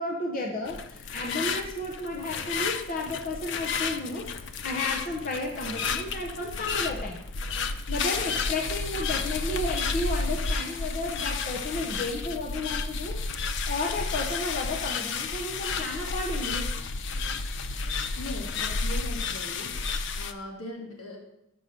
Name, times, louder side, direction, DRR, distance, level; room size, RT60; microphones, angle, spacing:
voice 1, 0.0-4.2 4.6-7.2 7.9-13.2 13.7-16.6, left 2 dB, 40° left, 0 dB, 0.8 m, -32 dB
sound 1, 0.7-20.3, left 4 dB, 55° left, 0.5 m, -31 dB
voice 2, 18.2-19.7 20.2-21.2, left 1 dB, 85° left, -1 dB, 2.0 m, -39 dB
5.8 x 5.3 x 6.6 m, 0.82 s
head